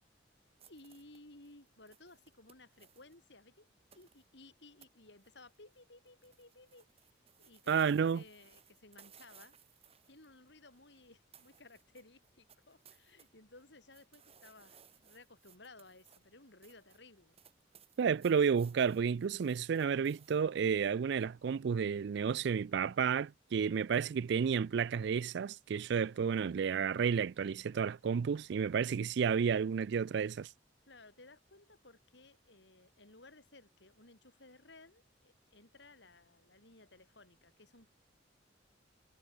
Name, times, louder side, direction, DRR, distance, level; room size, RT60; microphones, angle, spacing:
sound 1, 0.6-3.2 3.9-4.3 4.8-4.9 5.2-5.8 6.1-11.1 11.3-13.3 13.6-20.4, right 8 dB, 30° right, 3.6 m, -63 dB
voice 1, 0.7-3.7 3.9-9.6 10.1-17.4 30.9-37.9, left 2 dB, 65° left, 5.0 m, -58 dB
voice 2, 7.7-8.2 18.0-30.5, right 6 dB, 65° right, 0.4 m, -31 dB
head